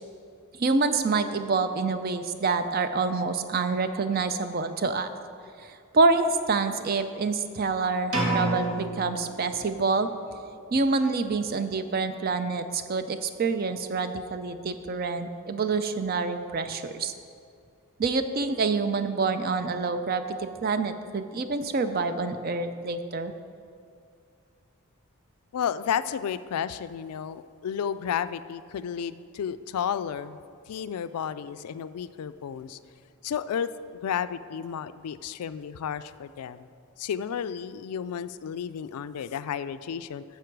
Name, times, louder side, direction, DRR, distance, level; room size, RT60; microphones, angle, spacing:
voice 1, 0.5-5.1 5.6-10.1 10.7-17.1 18.0-23.3, right 4 dB, 40° right, 10 dB, 0.4 m, -27 dB
sound 1, 8.1-10.0, right 2 dB, 80° right, 1.7 m, -29 dB
voice 2, 25.5-30.4 30.7-32.8 33.2-36.7 37.0-40.2, left 8 dB, 85° left, 14 dB, 0.3 m, -32 dB
9.7 x 6.8 x 4.6 m, 2.4 s
head